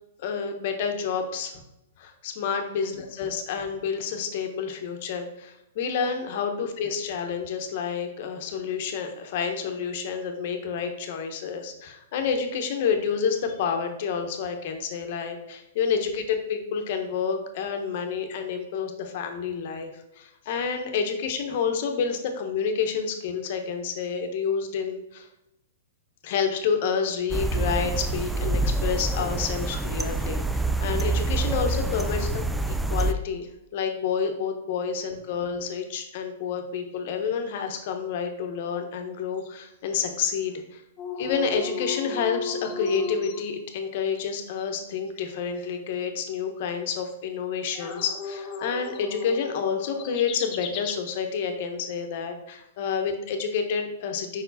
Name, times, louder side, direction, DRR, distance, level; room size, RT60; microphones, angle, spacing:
voice 1, 0.2-1.6 2.0-19.9 20.2-25.3 26.2-32.4 32.7-40.8 41.2-54.4, left 6 dB, 50° left, 5 dB, 1.1 m, -29 dB
sound 1, 27.3-33.1, right 2 dB, 5° right, 0.3 m, -26 dB
sound 2, 41.0-43.8 44.1-44.2 44.6-44.7 47.7-50.9, left 5 dB, 30° left, 0.8 m, -35 dB
5.3 x 4.6 x 4.1 m, 0.88 s
hypercardioid pair, 150°, 0 cm